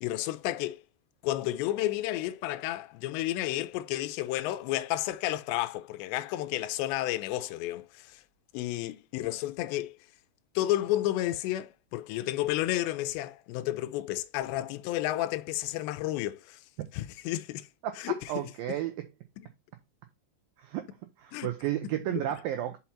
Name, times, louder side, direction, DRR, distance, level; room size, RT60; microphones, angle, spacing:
voice 1, 0.0-0.8 1.2-8.2 8.5-10.0 10.6-16.6 16.9-17.7 18.0-18.2 19.4-19.5 21.3-21.5 22.2-22.3, left 15 dB, 85° left, 2.8 m, -31 dB
voice 2, 17.8-19.1 20.6-22.8, right 12 dB, 90° right, 2.0 m, -33 dB
5.8 x 5.6 x 4.3 m
omnidirectional pair, 5.0 m